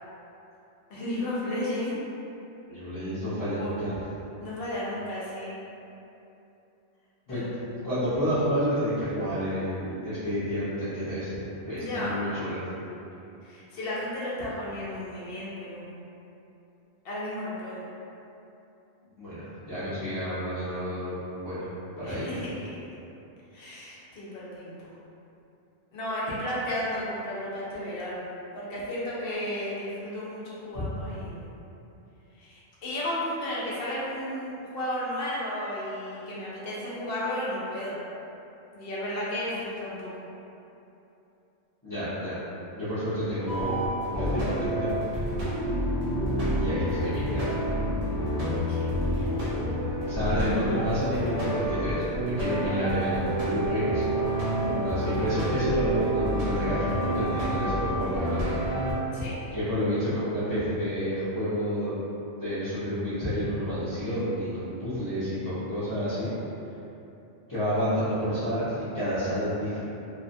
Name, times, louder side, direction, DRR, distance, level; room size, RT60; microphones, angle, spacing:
voice 1, 0.9-2.0 3.4-3.8 4.4-5.5 7.3-7.5 11.7-12.2 13.4-15.9 17.0-17.8 22.0-22.8 23.5-24.9 25.9-28.2 28.5-31.5 32.4-38.0 38.7-40.1 48.7-49.3 54.5-54.8 59.1-59.4, left 1 dB, 60° left, -7 dB, 0.7 m, -33 dB
voice 2, 2.7-4.0 7.3-11.3 11.6-12.6 19.2-21.1 21.4-21.7 22.0-22.2 30.7-30.8 41.8-42.4 42.7-43.7 44.2-44.9 46.6-47.6 50.0-54.0 54.7-58.6 59.5-62.0 62.4-66.3 67.5-69.8, equal, 25° left, -17 dB, 0.5 m, -30 dB
sound 1, 43.5-58.9, equal, 45° right, 0.5 m, -28 dB
2.6 x 2.1 x 2.6 m, 2.9 s
omnidirectional pair, 1.3 m